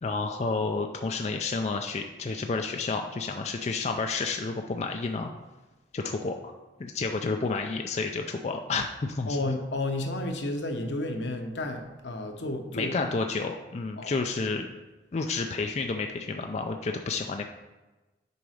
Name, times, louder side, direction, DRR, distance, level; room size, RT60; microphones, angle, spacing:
voice 1, 0.0-5.3 5.9-6.5 6.8-9.4 12.7-14.7 15.1-17.4, left 4 dB, 40° left, 4 dB, 0.4 m, -30 dB
voice 2, 9.3-12.9 14.0-14.1, left 2 dB, 85° left, 4 dB, 0.9 m, -31 dB
6.9 x 4.0 x 4.9 m, 1.1 s
head